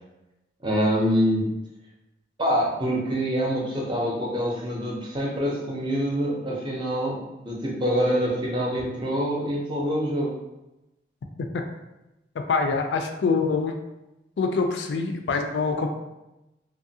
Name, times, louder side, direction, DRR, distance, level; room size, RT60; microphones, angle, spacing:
voice 1, 0.6-1.5 2.4-7.2 7.4-10.3, equal, 25° right, -2 dB, 0.5 m, -25 dB
voice 2, 12.5-13.8 14.4-15.9, left 4 dB, 80° left, 4 dB, 0.3 m, -24 dB
2.8 x 2.4 x 2.7 m, 0.96 s
head